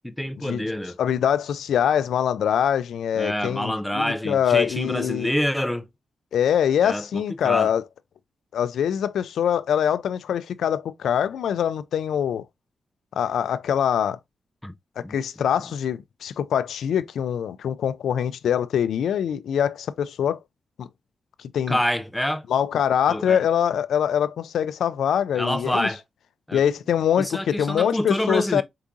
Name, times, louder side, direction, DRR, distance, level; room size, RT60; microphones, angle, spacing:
voice 1, 0.0-1.0 3.2-5.9 6.8-7.7 14.6-14.7 15.0-15.2 21.7-22.4 23.1-23.4 25.4-26.0 26.5-26.6 27.2-28.6, left 1 dB, 5° left, 0.4 m, -26 dB
voice 2, 1.0-5.3 6.3-7.8 8.5-12.5 13.2-14.2 15.0-20.4 20.8-20.9 21.4-21.8 22.5-25.9 26.5-28.6, left 9 dB, 85° left, 0.3 m, -24 dB
4.7 x 3.6 x 2.6 m
wide cardioid pair, 175°, 0 cm